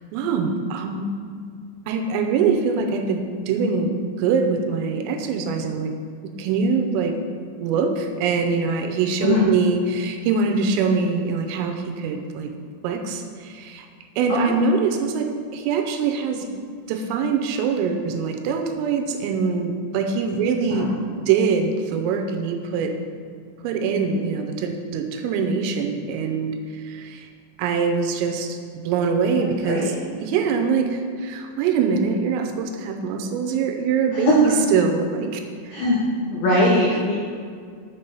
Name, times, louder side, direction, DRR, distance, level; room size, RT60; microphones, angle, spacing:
voice 1, 0.1-1.1 1.9-3.2 3.5-5.9 6.2-7.1 7.6-12.5 12.8-13.9 14.2-16.5 16.9-20.9 21.3-23.0 23.6-27.3 27.6-29.9 30.2-35.8, right 5 dB, 85° right, 5 dB, 3.2 m, -23 dB
voice 2, 34.1-34.5 35.7-36.0 36.3-37.1, left 1 dB, 80° left, -6 dB, 2.1 m, -20 dB
6.8 x 6.0 x 5.5 m, 2.1 s
omnidirectional pair, 6.0 m